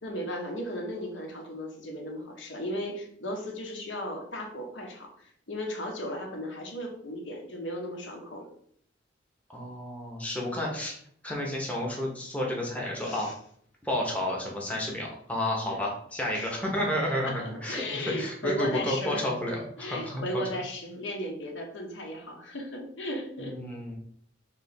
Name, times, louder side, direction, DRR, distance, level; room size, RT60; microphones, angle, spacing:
voice 1, 0.0-8.5 13.0-13.3 15.7-15.8 16.3-16.6 17.3-19.2 19.8-23.5, equal, 70° left, 1 dB, 0.9 m, -36 dB
voice 2, 9.5-10.9 11.2-13.3 13.8-17.3 17.6-20.4 23.4-23.9, left 1 dB, 10° left, -3 dB, 0.8 m, -31 dB
3.3 x 3.0 x 4.2 m, 0.64 s
head